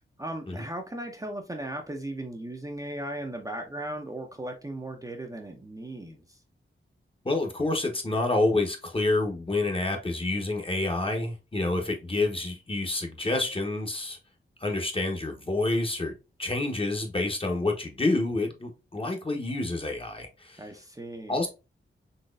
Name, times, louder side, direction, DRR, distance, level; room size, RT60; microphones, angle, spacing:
voice 1, 0.2-6.4 20.6-21.4, right 1 dB, 15° right, 0.6 m, -37 dB
voice 2, 7.2-14.2 14.6-16.1 16.4-20.6 21.3-21.5, left 2 dB, 25° left, 0.9 m, -28 dB
4.1 x 2.9 x 2.4 m
cardioid pair, 70°, 21 cm